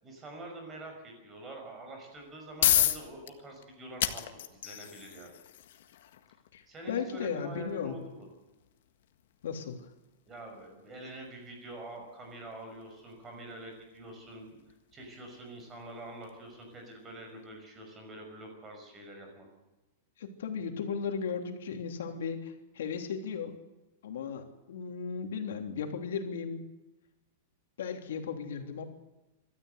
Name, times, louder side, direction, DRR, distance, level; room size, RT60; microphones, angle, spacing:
voice 1, 0.0-4.2 4.5-5.3 6.7-8.3 10.3-14.6 14.9-19.5, right 1 dB, 15° right, 3 dB, 5.7 m, -45 dB
sound 1, 2.1-17.0, left 12 dB, 60° left, 1.7 m, -36 dB
voice 2, 6.5-8.0 9.4-9.9 20.2-23.6 24.0-26.6 27.8-28.8, left 6 dB, 80° left, 5 dB, 3.3 m, -36 dB
26.5 x 13.5 x 8.2 m, 1.0 s
supercardioid pair, 175°, 0 cm